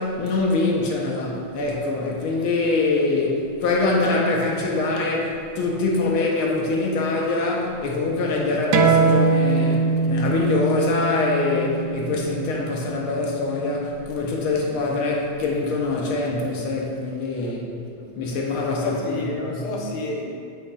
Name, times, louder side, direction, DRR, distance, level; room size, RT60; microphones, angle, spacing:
voice 1, 0.0-17.6 18.2-19.5, left 3 dB, 85° left, -2 dB, 1.7 m, -24 dB
sound 1, 8.7-13.9, right 5 dB, 75° right, 1.0 m, -23 dB
voice 2, 18.0-18.3 18.8-20.3, left 2 dB, 60° left, -1 dB, 1.4 m, -31 dB
8.3 x 7.0 x 2.4 m, 2.5 s
omnidirectional pair, 2.3 m